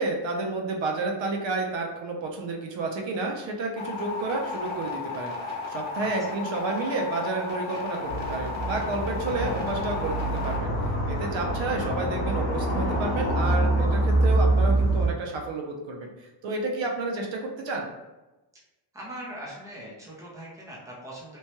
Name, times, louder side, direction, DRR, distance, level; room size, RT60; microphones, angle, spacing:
voice 1, 0.0-17.9, right 3 dB, 65° right, 1 dB, 0.6 m, -31 dB
sound 1, 3.8-10.6, left 4 dB, 45° left, 1.0 m, -34 dB
voice 2, 6.0-6.4 18.9-21.4, right 1 dB, 5° right, -5 dB, 0.5 m, -41 dB
sound 2, 8.0-15.1, right 1 dB, 75° left, 0.8 m, -25 dB
3.0 x 2.2 x 2.8 m, 1.1 s
cardioid pair, 150°, 49 cm